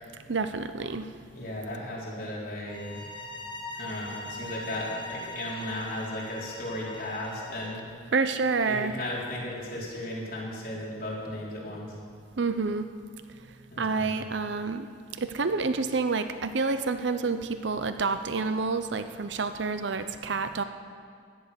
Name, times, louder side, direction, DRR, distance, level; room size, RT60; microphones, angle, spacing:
voice 1, 0.3-1.1 8.1-8.9 12.4-12.9 13.8-14.9 15.2-20.6, right 4 dB, 75° right, 9 dB, 0.7 m, -28 dB
voice 2, 1.3-3.1 3.7-7.8 8.6-12.0 13.7-14.2, left 1 dB, 50° left, -5 dB, 4.1 m, -35 dB
sound 1, 2.7-7.8, left 2 dB, 25° left, 1.3 m, -41 dB
16.5 x 11.5 x 7.0 m, 2.1 s
head